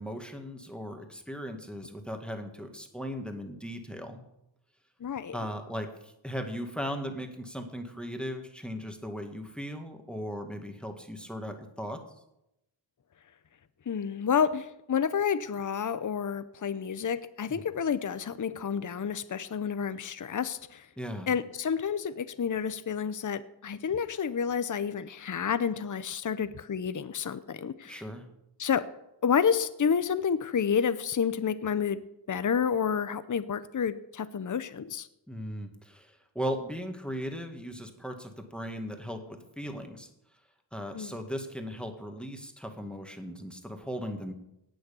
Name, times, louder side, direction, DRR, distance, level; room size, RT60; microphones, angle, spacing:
voice 1, 0.0-4.2 5.3-12.0 17.5-17.6 21.0-21.3 27.8-28.3 35.3-40.1 40.7-44.3, equal, ahead, 5 dB, 1.8 m, -37 dB
voice 2, 5.0-5.3 13.9-20.9 21.3-28.0 28.6-28.8 29.2-32.0 32.3-35.1 40.9-41.1, left 7 dB, 45° left, 13 dB, 0.7 m, -29 dB
18.0 x 6.4 x 7.0 m, 0.85 s
wide cardioid pair, 80°, 45 cm